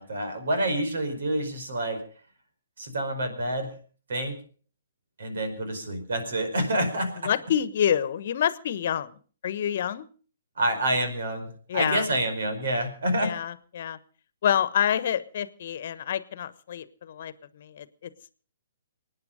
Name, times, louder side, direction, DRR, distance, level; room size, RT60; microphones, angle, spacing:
voice 1, 0.0-2.0 2.8-3.7 4.1-4.3 5.2-7.3 10.6-13.3, right 1 dB, 70° right, 7 dB, 4.9 m, -28 dB
voice 2, 7.2-9.1 9.4-10.1 11.7-12.1 13.2-14.0 14.4-18.1, left 9 dB, 55° left, 15 dB, 1.2 m, -27 dB
24.0 x 9.7 x 5.2 m, 0.42 s
hypercardioid pair, 135°, 0 cm